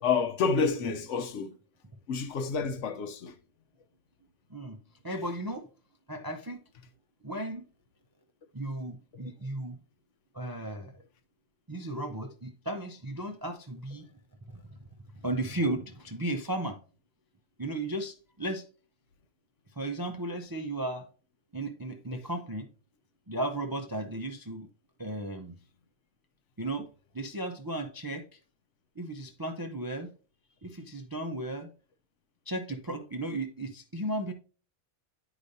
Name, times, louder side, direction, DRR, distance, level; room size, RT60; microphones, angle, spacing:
voice 1, 0.0-1.5 2.1-3.3, left 5 dB, 65° left, 1.0 m, -29 dB
voice 2, 5.0-5.7 6.1-6.6 7.2-7.7 8.5-9.8 10.3-11.0 11.7-14.1 14.5-14.6 15.2-16.8 17.6-18.7 19.8-21.1 21.5-22.7 23.3-24.7 25.0-25.6 26.6-26.9 27.1-28.3 29.0-30.1 30.6-31.7 32.5-34.3, right 1 dB, 30° right, 0.4 m, -35 dB
9.6 x 4.9 x 2.6 m
omnidirectional pair, 1.4 m